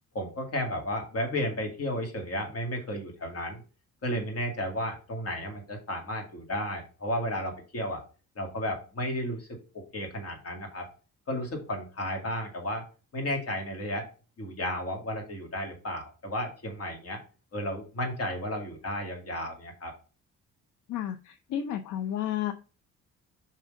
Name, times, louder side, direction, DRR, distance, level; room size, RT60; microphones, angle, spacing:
voice 1, 0.1-3.6 4.0-8.0 8.4-9.5 9.9-10.9 11.3-12.8 13.1-14.1 14.4-17.2 17.5-19.9, left 1 dB, 55° left, 2 dB, 2.3 m, -33 dB
voice 2, 20.9-22.5, left 10 dB, 80° left, 8 dB, 0.6 m, -32 dB
5.4 x 3.7 x 5.1 m, 0.36 s
cardioid pair, 90°, 30 cm